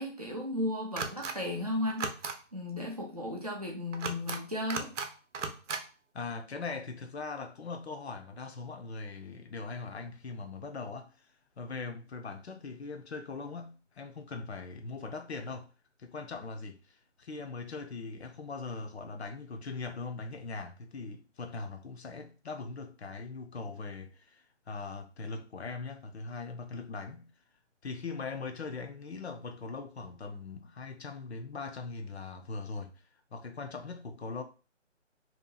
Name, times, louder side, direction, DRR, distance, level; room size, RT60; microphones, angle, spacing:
voice 1, 0.0-2.1 2.5-4.9, left 1 dB, 30° right, 0.5 m, -35 dB
sound 1, 1.0-1.3 1.9-2.3 3.9-4.4 4.7-5.1 5.3-5.8, right 4 dB, 70° right, 0.6 m, -35 dB
voice 2, 6.1-11.3 11.6-15.7 16.0-27.3 27.8-32.9 33.3-34.4, left 4 dB, 60° left, 0.5 m, -40 dB
2.7 x 2.2 x 2.7 m
hypercardioid pair, 165°, 37 cm